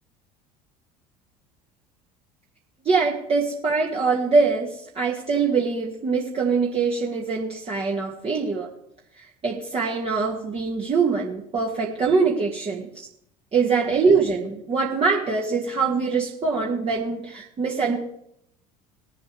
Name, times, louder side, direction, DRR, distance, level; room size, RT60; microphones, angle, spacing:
voice 1, 2.9-8.7 9.2-13.1 13.5-18.0, right 4 dB, 30° right, -3 dB, 2.0 m, -23 dB
20.5 x 7.7 x 3.4 m, 0.74 s
figure-of-eight pair, 65°, 21 cm